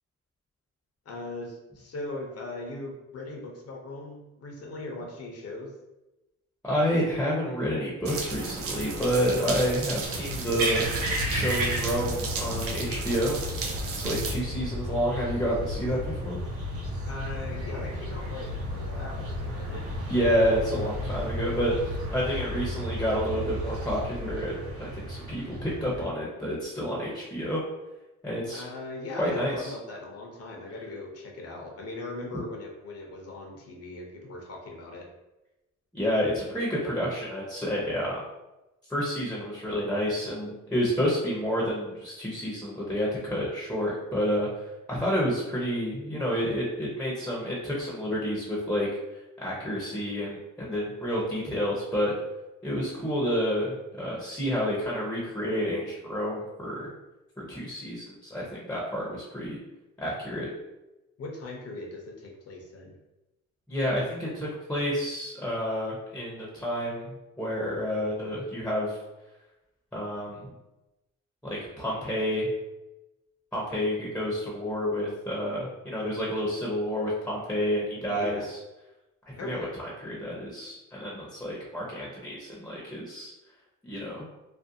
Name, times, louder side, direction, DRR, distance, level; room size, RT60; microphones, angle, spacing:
voice 1, 1.1-5.7 17.1-20.3 28.5-35.1 61.2-62.9 78.1-78.5 79.4-79.7, left 2 dB, 55° left, 1 dB, 0.6 m, -39 dB
voice 2, 6.6-10.8 11.2-13.4 13.9-16.4 20.1-27.6 28.2-28.6 29.2-29.7 32.3-32.4 35.9-38.2 38.9-48.9 49.1-52.1 52.6-56.9 57.4-59.6 60.0-60.5 63.7-69.0 69.9-70.4 71.4-72.5 73.5-78.6 79.4-79.7 80.0-83.3 83.8-84.3, equal, 5° left, -5 dB, 0.6 m, -29 dB
sound 1, 8.1-14.4, right 3 dB, 50° right, 0.5 m, -34 dB
sound 2, 10.1-26.1, equal, 75° right, 0.8 m, -33 dB
2.5 x 2.1 x 2.6 m, 0.99 s
cardioid pair, 90°, 30 cm